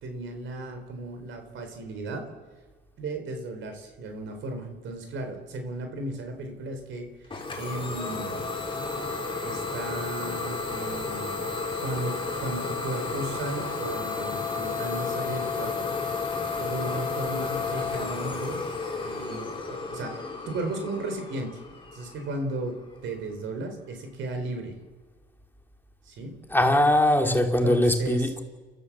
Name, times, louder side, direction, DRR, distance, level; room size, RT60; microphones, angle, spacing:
voice 1, 0.0-2.2 3.0-8.4 9.4-11.5 11.8-15.9 16.2-18.6 19.0-21.6 21.9-24.8 26.0-26.4 27.2-28.3, right 2 dB, 75° right, 4.2 m, -35 dB
Idling / Domestic sounds home sounds, 7.3-22.8, left 4 dB, 25° left, 3.9 m, -32 dB
voice 2, 26.5-28.4, left 1 dB, 10° left, 2.6 m, -21 dB
29.5 x 14.0 x 7.5 m
cardioid pair, 90°, 20 cm